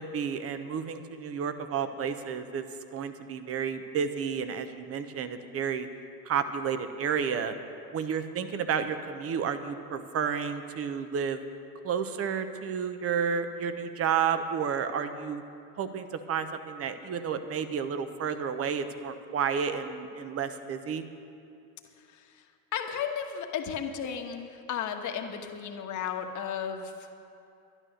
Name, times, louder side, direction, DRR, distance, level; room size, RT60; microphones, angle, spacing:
voice 1, 0.0-2.6 2.9-5.9 6.2-7.5 7.9-11.4 11.8-15.4 15.8-21.0, right 7 dB, 30° right, 10 dB, 1.0 m, -31 dB
voice 2, 22.0-22.5 22.7-27.1, left 8 dB, 35° left, 4 dB, 1.4 m, -34 dB
12.0 x 11.0 x 6.5 m, 2.7 s
hypercardioid pair, 100°, 49 cm